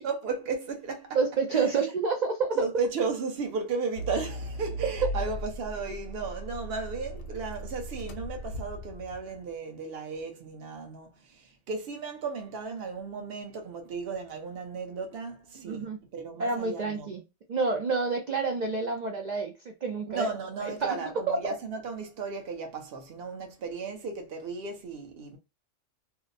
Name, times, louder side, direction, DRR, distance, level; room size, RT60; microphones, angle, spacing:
voice 1, 0.0-1.2 1.5-1.6 2.6-17.1 20.1-25.4, right 4 dB, 55° right, 0.9 m, -35 dB
voice 2, 1.1-2.7 5.0-5.1 15.7-16.0 16.4-17.2 17.5-20.3 20.8-21.0 21.3-21.5, right 4 dB, 85° right, 0.4 m, -28 dB
Accelerating revving vroom, 4.0-9.4, equal, 65° left, 0.8 m, -37 dB
2.7 x 2.0 x 2.5 m
omnidirectional pair, 1.3 m